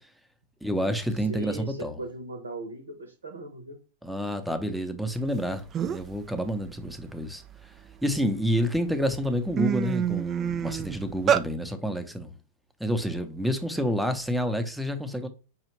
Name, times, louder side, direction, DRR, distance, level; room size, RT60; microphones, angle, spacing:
voice 1, 0.6-2.0 4.0-7.4 8.0-12.4 12.8-15.3, equal, ahead, 0.7 m, -29 dB
voice 2, 1.2-3.8 13.8-14.1, right 2 dB, 80° right, 0.9 m, -39 dB
sound 1, 5.4-5.5 5.7-6.2 6.6-8.2 8.8-8.9 9.2-11.5, right 9 dB, 30° right, 0.3 m, -27 dB
5.5 x 2.5 x 3.1 m
figure-of-eight pair, 90°, 0 cm